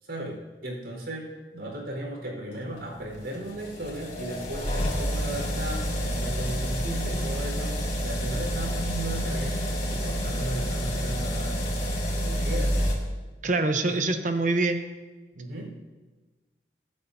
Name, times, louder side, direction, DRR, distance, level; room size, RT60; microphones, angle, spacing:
voice 1, 0.0-9.6 9.9-11.7 12.2-12.8 13.9-14.0 15.3-15.8, right 1 dB, 80° right, -1 dB, 4.7 m, -36 dB
sound 1, 2.6-12.9, equal, 45° left, 4.2 m, -29 dB
voice 2, 13.4-14.8, right 3 dB, 45° right, 7 dB, 1.0 m, -25 dB
25.0 x 9.5 x 2.8 m, 1.3 s
head